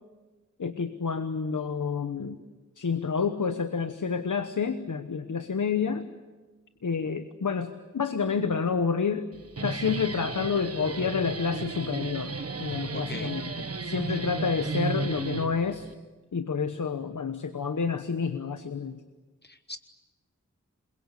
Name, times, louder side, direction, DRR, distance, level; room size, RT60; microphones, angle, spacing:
voice 1, 0.6-2.4 2.8-6.1 6.8-9.3 9.6-12.3 12.6-13.5 13.8-15.9 16.3-19.0, left 5 dB, 90° left, 9 dB, 1.2 m, -29 dB
Guitar, 9.3-15.9, right 4 dB, 50° right, 1.3 m, -34 dB
voice 2, 12.9-13.3 19.4-19.8, left 3 dB, 35° left, 9 dB, 1.0 m, -39 dB
28.5 x 22.5 x 8.3 m, 1.2 s
wide cardioid pair, 80°, 30 cm